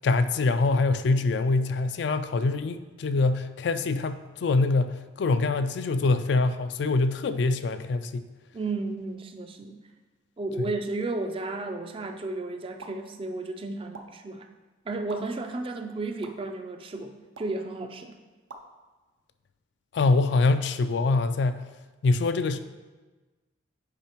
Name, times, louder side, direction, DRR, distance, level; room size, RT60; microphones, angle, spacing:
voice 1, 0.0-8.3 10.6-10.7 19.9-21.6 22.0-22.6, left 3 dB, 60° left, 11 dB, 0.3 m, -24 dB
voice 2, 8.5-9.8 10.4-14.5 14.9-18.2, right 2 dB, 30° right, 6 dB, 0.4 m, -33 dB
sound 1, 12.8-13.0 13.9-14.0 15.1-15.2 16.2-16.3 17.4-17.6 18.5-18.6, right 3 dB, 85° right, 0.6 m, -43 dB
8.7 x 4.8 x 2.9 m, 1.2 s
head